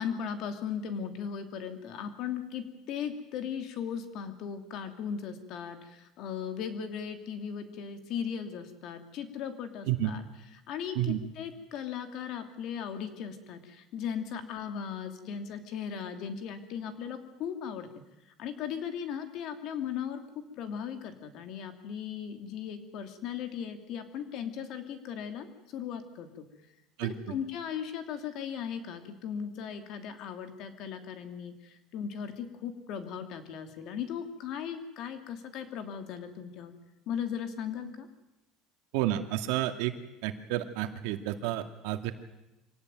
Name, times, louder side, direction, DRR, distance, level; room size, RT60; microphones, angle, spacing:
voice 1, 0.0-10.2 10.7-17.9 18.4-25.5 25.7-26.4 27.0-36.7 37.1-38.1, left 8 dB, 55° left, 7 dB, 2.9 m, -37 dB
voice 2, 38.9-39.9 40.2-42.1, right 13 dB, 85° right, 7 dB, 2.2 m, -30 dB
25.0 x 17.5 x 9.2 m, 0.95 s
cardioid pair, 150°, 0 cm